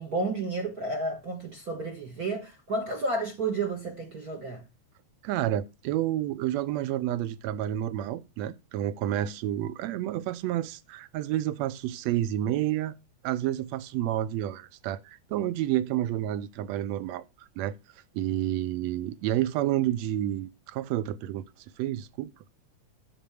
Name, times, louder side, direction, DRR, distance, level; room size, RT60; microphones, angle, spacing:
voice 1, 0.0-4.6, right 2 dB, 40° right, 1.4 m, -31 dB
voice 2, 5.2-12.9 13.2-17.8 18.2-21.5 21.8-22.3, right 12 dB, 75° right, 1.7 m, -30 dB
10.0 x 7.7 x 4.9 m
omnidirectional pair, 3.5 m